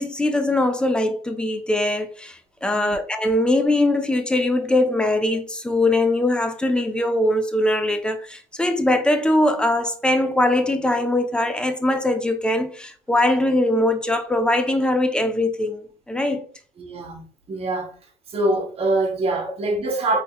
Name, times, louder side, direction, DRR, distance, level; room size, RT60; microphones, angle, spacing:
voice 1, 0.0-16.4, left 1 dB, 5° left, 0.6 m, -21 dB
voice 2, 16.8-17.9 18.3-20.2, right 2 dB, 45° right, 1.0 m, -24 dB
3.5 x 3.2 x 2.3 m
supercardioid pair, 80°, 14 cm